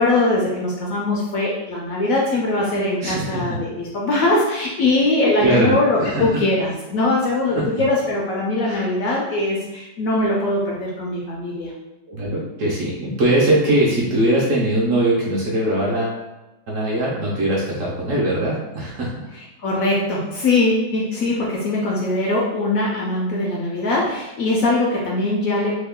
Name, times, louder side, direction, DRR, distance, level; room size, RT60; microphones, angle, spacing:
voice 1, 0.0-11.7 19.3-25.8, left 2 dB, 70° left, -3 dB, 0.8 m, -21 dB
voice 2, 3.0-3.6 5.4-6.4 7.5-7.6 8.6-8.8 12.1-16.2 16.7-19.1, right 1 dB, 65° right, -5 dB, 0.9 m, -21 dB
3.0 x 2.2 x 3.5 m, 1.0 s
omnidirectional pair, 1.8 m